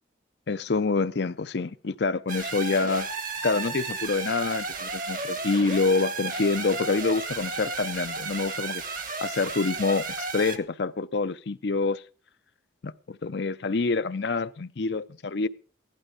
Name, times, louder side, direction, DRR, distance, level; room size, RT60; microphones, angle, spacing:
voice 1, 0.5-3.1 3.4-8.8 9.2-12.0 12.8-15.5, left 4 dB, 55° left, 0.5 m, -27 dB
sound 1, 2.3-10.6, right 4 dB, 45° right, 1.3 m, -33 dB
15.5 x 11.5 x 5.0 m
head